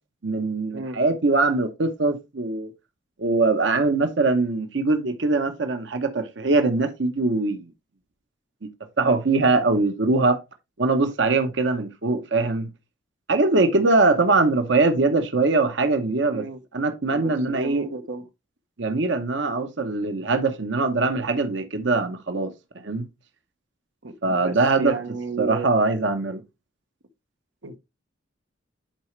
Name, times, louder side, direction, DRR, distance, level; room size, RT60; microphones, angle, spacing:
voice 1, 0.2-2.7 3.2-7.7 9.0-10.4 10.8-12.7 13.3-16.4 16.7-17.9 18.8-23.1 24.2-24.9 25.4-26.4, right 3 dB, 65° right, 0.9 m, -22 dB
voice 2, 17.1-18.2 24.0-25.7 27.6-27.8, right 3 dB, 90° right, 1.0 m, -32 dB
10.0 x 4.9 x 3.2 m
head